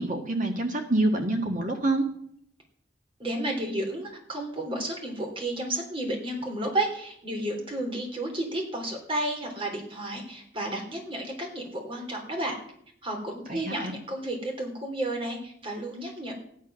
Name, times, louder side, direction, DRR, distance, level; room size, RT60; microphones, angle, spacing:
voice 1, 0.0-2.0 13.5-13.9, right 2 dB, 45° right, 3 dB, 1.6 m, -26 dB
voice 2, 3.2-12.6 13.0-16.3, right 1 dB, 30° right, 2 dB, 3.4 m, -32 dB
15.0 x 10.5 x 6.3 m, 0.68 s
head